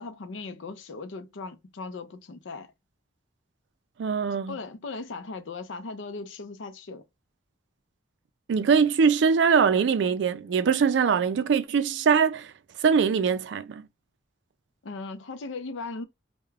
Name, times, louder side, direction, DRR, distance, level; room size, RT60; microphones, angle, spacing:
voice 1, 0.0-2.7 4.5-7.1 14.8-16.0, left 3 dB, 80° left, 0.5 m, -38 dB
voice 2, 4.0-4.6 8.5-12.5 12.8-13.8, right 6 dB, 70° right, 0.3 m, -22 dB
2.3 x 2.2 x 3.1 m
head